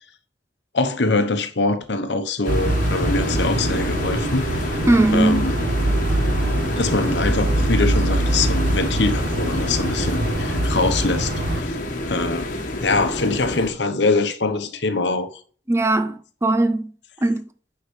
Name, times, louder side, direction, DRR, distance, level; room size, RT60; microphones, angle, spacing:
voice 1, 0.7-4.8 5.1-5.6 6.7-11.8 12.0-12.5 12.8-15.4, left 3 dB, 85° left, 1.0 m, -23 dB
sound 1, 2.4-13.7, left 1 dB, 50° left, 1.4 m, -28 dB
sound 2, 2.5-11.6, right 1 dB, 70° right, 1.2 m, -23 dB
voice 2, 4.9-5.5 15.7-16.9 17.2-17.4, right 2 dB, 15° right, 0.5 m, -19 dB
9.5 x 5.6 x 3.2 m
head